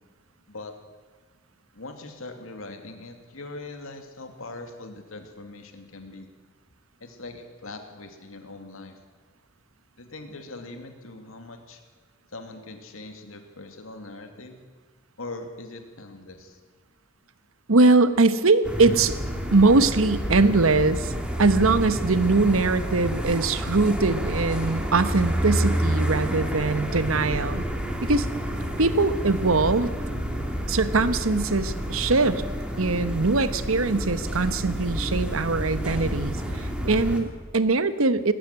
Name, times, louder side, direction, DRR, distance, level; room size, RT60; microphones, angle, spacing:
voice 1, 1.7-6.3 7.0-9.0 10.0-11.8 12.3-14.6 15.2-16.6, left 2 dB, 80° left, 6 dB, 2.4 m, -41 dB
voice 2, 17.7-19.1 19.5-21.1 21.4-27.6 28.0-28.3 28.8-29.9 30.7-32.4 32.8-38.3, right 3 dB, 90° right, 12 dB, 1.1 m, -22 dB
sound 1, 18.6-37.2, equal, 5° right, 2.5 m, -29 dB
20.0 x 15.0 x 9.4 m, 1.4 s
head